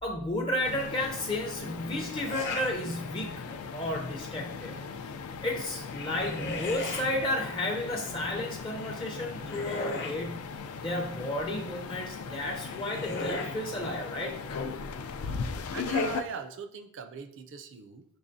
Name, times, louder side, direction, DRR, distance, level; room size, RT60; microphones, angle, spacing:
voice 1, 0.0-3.4 3.7-4.8 5.4-10.4 10.8-14.4, left 1 dB, 25° left, 1 dB, 0.4 m, -32 dB
sound 1, 0.6-16.2, left 5 dB, 90° left, 0.4 m, -38 dB
sound 2, 2.2-2.7 3.2-3.7 5.7-7.0 8.8-10.2 12.2-13.6, left 2 dB, 55° left, 0.8 m, -37 dB
voice 2, 15.2-18.1, right 6 dB, 60° right, 9 dB, 0.4 m, -41 dB
5.4 x 3.0 x 2.6 m, 0.70 s
head